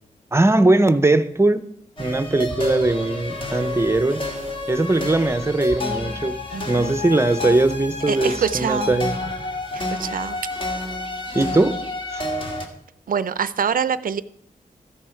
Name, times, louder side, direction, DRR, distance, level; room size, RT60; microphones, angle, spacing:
voice 1, 0.3-1.7 2.0-4.2 4.7-9.2 11.3-11.8 12.1-12.2, right 2 dB, 15° right, 12 dB, 0.7 m, -20 dB
sound 1, 2.0-12.7, left 2 dB, 35° left, 1.9 m, -29 dB
voice 2, 6.5-7.0 8.1-9.0 9.7-10.4 13.1-14.2, right 7 dB, 70° right, 15 dB, 0.5 m, -25 dB
14.0 x 10.0 x 4.5 m, 0.71 s
wide cardioid pair, 140°, 15 cm